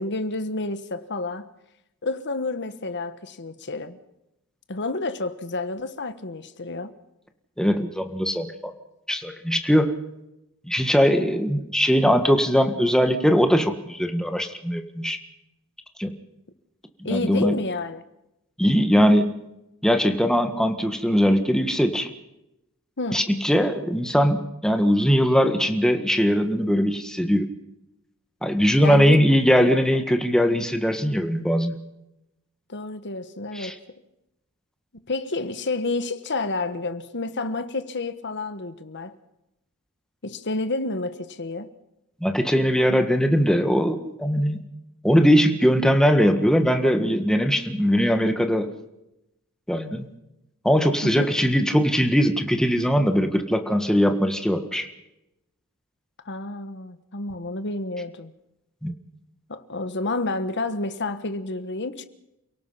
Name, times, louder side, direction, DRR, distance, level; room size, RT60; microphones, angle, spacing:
voice 1, 0.0-1.5 2.0-4.0 4.7-6.9 17.0-18.0 23.0-23.2 28.8-29.2 32.7-33.8 34.9-39.2 40.2-41.7 51.0-51.3 56.2-58.3 59.5-62.0, left 2 dB, 55° left, 1.4 m, -30 dB
voice 2, 7.6-8.7 9.1-9.9 10.7-15.2 16.0-16.2 17.0-17.5 18.6-19.3 19.8-22.1 23.1-27.5 28.4-31.8 33.6-33.7 42.2-44.6 45.0-48.7 49.7-50.1 50.6-54.9 58.8-58.9, equal, 5° left, 1.8 m, -20 dB
29.0 x 17.5 x 5.8 m
head